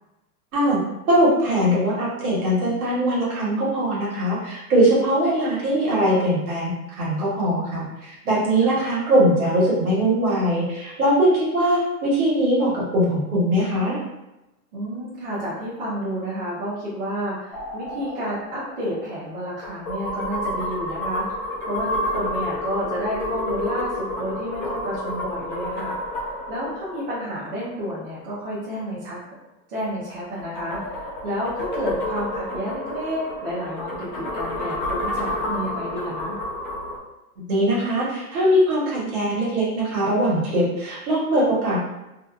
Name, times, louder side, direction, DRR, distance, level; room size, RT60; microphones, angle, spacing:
voice 1, 1.1-14.0 37.4-41.8, right 1 dB, 70° right, -5 dB, 1.2 m, -21 dB
voice 2, 14.7-29.2 29.7-36.4, equal, 40° right, -9 dB, 0.6 m, -30 dB
sound 1, 17.5-28.1 30.1-37.0, left 1 dB, 35° left, 0.4 m, -30 dB
2.6 x 2.2 x 2.3 m, 0.97 s
supercardioid pair, 180°, 45 cm